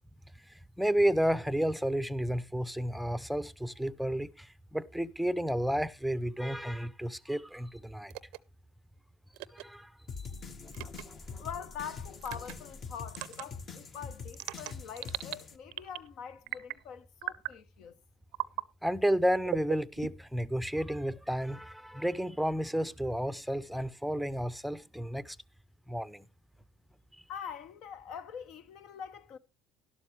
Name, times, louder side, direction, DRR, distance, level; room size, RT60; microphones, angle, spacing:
voice 1, 0.8-8.1 9.5-9.9 18.8-25.4 25.9-26.2, equal, ahead, 0.6 m, -31 dB
sound 1, 8.1-8.4 9.3-9.6 10.7-11.0 12.2-12.5 13.1-13.5 14.3-15.4 15.7-16.1 16.5-16.8 17.2-17.6 18.3-18.7 19.5-20.4, right 21 dB, 70° right, 0.5 m, -38 dB
sound 2, 10.1-15.6, left 5 dB, 40° left, 1.2 m, -44 dB
voice 2, 11.4-17.9 27.3-29.4, left 7 dB, 60° left, 0.9 m, -44 dB
12.0 x 12.0 x 3.1 m
hypercardioid pair, 80°, 0 cm